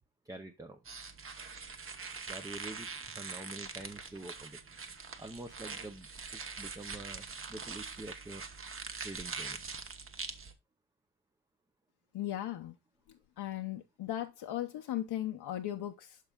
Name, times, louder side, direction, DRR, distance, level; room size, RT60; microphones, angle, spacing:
voice 1, 0.2-0.8 2.3-2.9 3.1-4.6 5.2-6.1 6.3-8.5 9.0-9.6, right 2 dB, 10° right, 0.5 m, -46 dB
sound 1, 0.8-10.5, right 5 dB, 30° right, 0.9 m, -43 dB
voice 2, 12.1-12.8 13.4-16.2, left 12 dB, 65° left, 0.7 m, -37 dB
12.5 x 4.6 x 2.2 m
cardioid pair, 130°, 42 cm